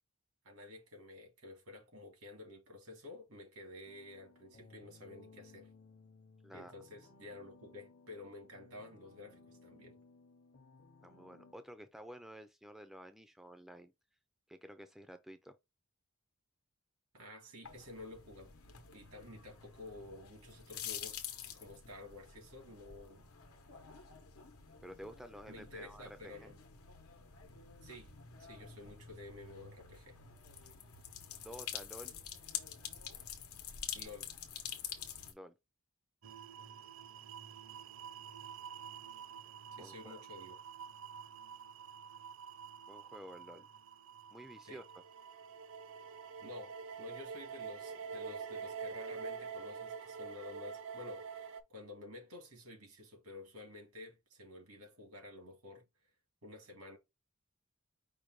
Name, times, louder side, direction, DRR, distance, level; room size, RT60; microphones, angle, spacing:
voice 1, 0.4-5.7 6.5-10.0 17.1-18.5 18.9-21.2 21.5-23.3 25.5-26.6 27.8-28.1 28.4-30.2 33.9-34.3 39.8-40.6 44.6-44.8 46.4-55.8 56.4-57.0, left 2 dB, 90° right, 1.9 m, -51 dB
sound 1, 3.8-11.5, left 3 dB, 50° left, 0.8 m, -60 dB
voice 2, 11.0-13.9 14.5-15.5 24.8-26.5 31.4-32.1 35.3-35.5 39.8-40.2 42.9-43.7 44.3-45.0, equal, ahead, 0.4 m, -51 dB
sound 2, 17.6-35.3, left 9 dB, 90° left, 0.9 m, -48 dB
sound 3, 36.2-51.6, right 6 dB, 65° right, 0.5 m, -47 dB
5.1 x 2.2 x 4.6 m
head